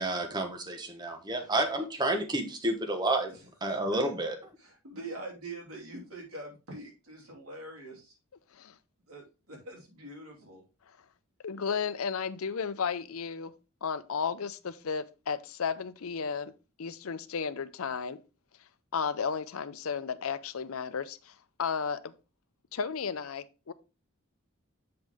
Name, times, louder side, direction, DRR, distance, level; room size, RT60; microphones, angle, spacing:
voice 1, 0.0-3.3 3.6-4.3, right 2 dB, 20° right, 1.1 m, -30 dB
voice 2, 3.3-4.0 4.6-8.1 9.1-10.6, right 2 dB, 85° right, 3.0 m, -44 dB
voice 3, 11.4-13.5 13.8-16.5 16.8-18.2 18.9-22.1 22.7-23.7, left 6 dB, 80° left, 0.6 m, -33 dB
7.7 x 5.3 x 3.5 m
head